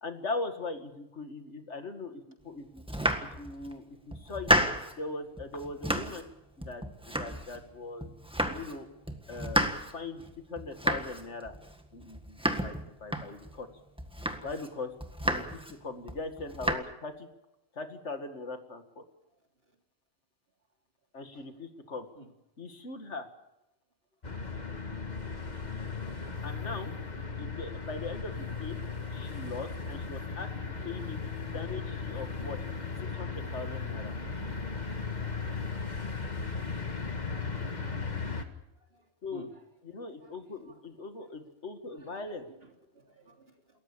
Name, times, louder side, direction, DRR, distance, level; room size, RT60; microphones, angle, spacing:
voice 1, 0.0-2.8 3.4-4.5 5.0-6.3 6.6-8.1 8.5-8.9 9.3-10.2 10.5-11.5 11.9-13.7 14.4-14.9 15.2-17.3 17.8-19.0 21.1-22.1 22.6-23.3 26.4-26.9 27.4-28.8 29.1-30.5 30.8-31.2 31.5-32.6 33.1-34.1 39.2-39.5 39.8-42.5, left 3 dB, 80° left, 7 dB, 2.4 m, -40 dB
Domestic sounds home sounds, 2.8-3.7 4.1-5.0 5.4-6.3 6.6-7.7 8.0-8.8 9.1-13.6 14.0-14.7 15.0-15.7 16.1-16.8, equal, 5° right, 1.6 m, -32 dB
sound 1, 24.2-38.4, left 4 dB, 40° left, 1.9 m, -36 dB
voice 2, 36.7-37.5 39.3-39.5 40.2-40.3 40.7-40.8 41.9-42.1 42.9-43.5, right 2 dB, 60° right, 2 dB, 3.5 m, -52 dB
28.5 x 14.5 x 7.1 m, 0.87 s
omnidirectional pair, 1.2 m